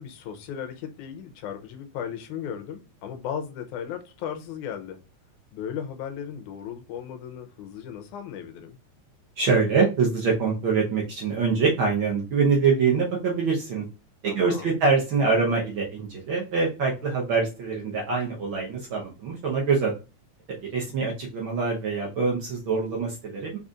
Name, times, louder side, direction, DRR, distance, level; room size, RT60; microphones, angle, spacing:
voice 1, 0.0-5.0 5.5-8.8 14.2-14.8, left 8 dB, 85° left, 7 dB, 2.2 m, -36 dB
voice 2, 9.4-13.8 14.2-19.9 20.7-23.6, right 4 dB, 75° right, -2 dB, 1.1 m, -24 dB
4.9 x 4.1 x 2.4 m, 0.31 s
omnidirectional pair, 3.5 m